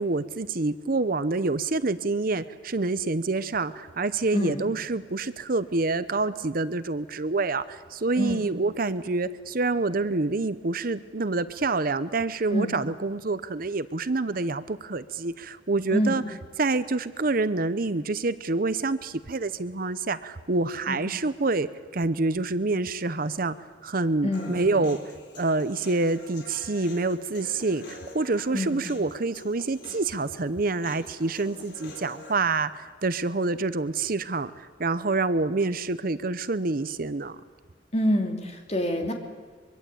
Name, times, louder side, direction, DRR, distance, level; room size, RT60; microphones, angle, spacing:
voice 1, 0.0-16.2 16.6-23.6 23.8-25.0 25.4-37.4, right 3 dB, 50° right, 14 dB, 0.8 m, -27 dB
voice 2, 15.9-16.3 20.9-21.0 24.2-24.9 28.5-28.8 37.9-39.1, equal, 35° left, 3 dB, 3.1 m, -27 dB
Human voice, 24.3-32.3, left 2 dB, 60° left, 4.3 m, -46 dB
24.0 x 23.0 x 8.6 m, 1.5 s
head